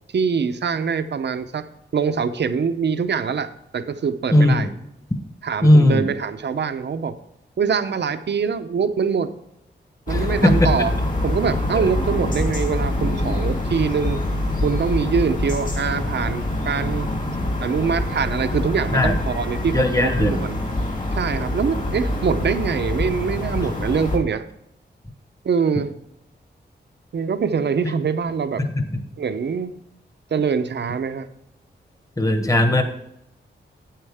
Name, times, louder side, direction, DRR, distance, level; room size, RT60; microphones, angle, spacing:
voice 1, 0.1-1.6 1.9-4.7 5.4-7.1 7.6-9.3 10.1-11.0 11.2-14.2 14.6-17.1 17.6-20.6 21.1-24.4 25.4-25.9 27.1-28.6 29.2-29.7 30.3-31.3, right 6 dB, 65° right, 10 dB, 0.7 m, -24 dB
voice 2, 4.3-4.6 5.6-6.1 10.1-10.7 18.9-19.1 19.7-20.4 32.2-32.8, left 1 dB, 15° left, 7 dB, 1.2 m, -17 dB
sound 1, 10.1-24.2, left 1 dB, 45° left, 2.5 m, -25 dB
9.1 x 8.8 x 3.6 m, 0.82 s
wide cardioid pair, 110°, 19 cm